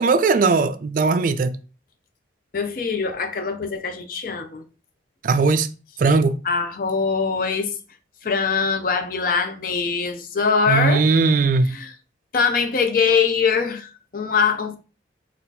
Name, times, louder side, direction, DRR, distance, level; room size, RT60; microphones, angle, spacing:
voice 1, 0.0-1.6 5.2-5.7 6.0-6.4 10.7-11.8, right 4 dB, 45° right, 0.3 m, -18 dB
voice 2, 2.5-4.6 6.4-7.8 8.2-11.1 11.7-11.9 12.3-14.8, left 5 dB, 50° left, 0.5 m, -22 dB
4.1 x 2.4 x 4.0 m
head